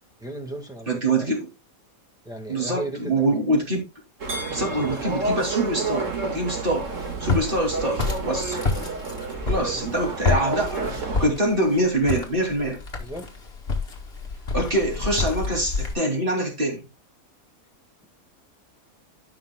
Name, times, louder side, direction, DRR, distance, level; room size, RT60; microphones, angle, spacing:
voice 1, 0.2-1.3 2.2-3.4 4.6-5.2 9.7-9.8 13.0-13.3, right 1 dB, 5° right, 1.6 m, -35 dB
voice 2, 0.9-1.5 2.5-3.9 4.5-6.1 6.3-6.9 7.2-8.6 9.5-12.8 14.5-16.8, right 1 dB, 35° right, 2.9 m, -24 dB
sound 1, 4.2-11.3, right 3 dB, 60° right, 2.1 m, -30 dB
Walk footsteps, 6.7-15.9, left 4 dB, 45° left, 2.0 m, -29 dB
15.0 x 5.8 x 2.2 m
omnidirectional pair, 1.5 m